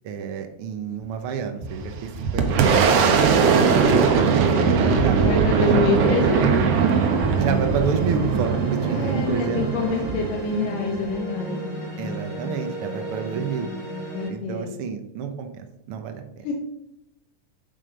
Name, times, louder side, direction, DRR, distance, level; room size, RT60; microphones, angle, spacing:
voice 1, 0.0-3.2 3.6-5.3 5.7-5.9 7.4-9.6 12.0-13.7 14.3-16.4, right 6 dB, 85° right, 6 dB, 1.2 m, -30 dB
Walk footsteps, 1.0-1.2 1.6-3.0 3.3-4.6 4.8-8.4 8.7-8.9 9.4-9.5, right 2 dB, 30° right, 4.3 m, -40 dB
Boom, 1.7-11.1, right 5 dB, 65° right, 1.7 m, -20 dB
sound 1, 4.0-14.3, equal, 10° left, 2.5 m, -33 dB
voice 2, 5.1-6.5 6.9-7.0 8.9-11.6 14.1-14.8 16.4-16.5, left 3 dB, 75° left, 0 dB, 2.7 m, -27 dB
8.3 x 7.7 x 5.2 m, 0.82 s
omnidirectional pair, 3.9 m